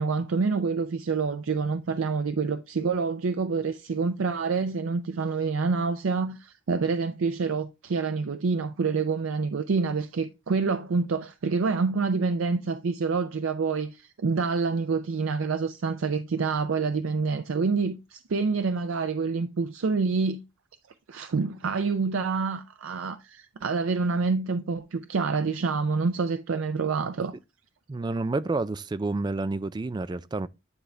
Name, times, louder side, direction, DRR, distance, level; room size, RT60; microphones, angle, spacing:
voice 1, 0.0-20.4 21.1-27.3, right 4 dB, 85° right, 0.5 m, -27 dB
voice 2, 27.9-30.5, right 3 dB, 20° right, 0.3 m, -29 dB
9.6 x 3.4 x 3.7 m
head